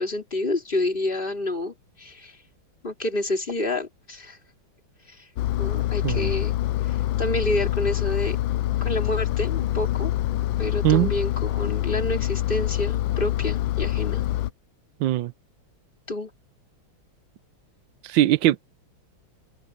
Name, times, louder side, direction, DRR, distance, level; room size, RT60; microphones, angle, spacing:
voice 1, 0.0-2.4 2.8-4.4 5.1-5.2 5.6-6.5 6.9-8.4 8.8-10.1 10.6-14.2 16.1-16.3, left 1 dB, 25° left, 3.4 m, -28 dB
Engine, 5.4-14.5, left 14 dB, 75° left, 1.3 m, -25 dB
voice 2, 15.0-15.3 18.0-18.7, right 14 dB, 70° right, 1.4 m, -21 dB
open air
omnidirectional pair, 2.2 m